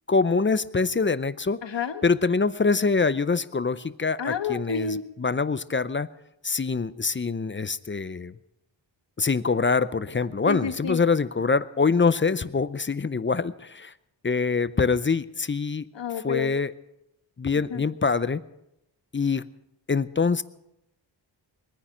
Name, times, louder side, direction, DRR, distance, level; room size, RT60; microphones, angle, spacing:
voice 1, 0.1-1.6 2.0-6.1 6.4-8.3 9.2-13.9 14.2-15.8 16.2-16.7 17.4-18.4 19.1-19.5 19.9-20.4, left 4 dB, 25° left, 15 dB, 0.5 m, -24 dB
voice 2, 1.6-2.0 4.2-5.0 10.5-11.0 15.9-16.5 17.7-17.8, left 6 dB, 70° left, 8 dB, 1.4 m, -29 dB
21.5 x 9.9 x 6.0 m, 0.85 s
wide cardioid pair, 80°, 46 cm